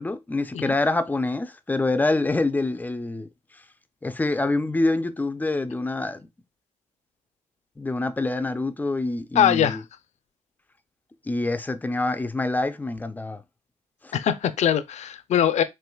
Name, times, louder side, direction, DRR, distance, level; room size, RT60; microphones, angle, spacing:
voice 1, 0.0-3.3 4.0-6.3 7.8-9.8 11.3-13.4 14.0-14.1, left 2 dB, 15° left, 0.4 m, -26 dB
voice 2, 9.3-9.8 14.1-15.6, left 9 dB, 65° left, 0.5 m, -22 dB
4.4 x 2.9 x 2.3 m
cardioid pair, 105°, 13 cm